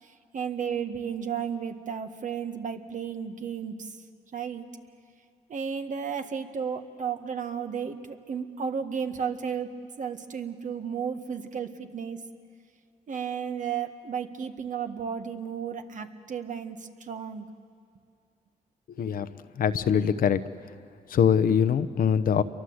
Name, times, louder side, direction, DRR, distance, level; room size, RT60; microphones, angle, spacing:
voice 1, 0.0-4.0 4.3-4.6 5.5-12.2 13.1-17.5, right 7 dB, 60° right, 7 dB, 1.6 m, -33 dB
voice 2, 19.6-20.4 21.1-22.4, left 7 dB, 75° left, 12 dB, 0.9 m, -23 dB
28.5 x 23.0 x 8.0 m, 2.3 s
cardioid pair, 95°, 15 cm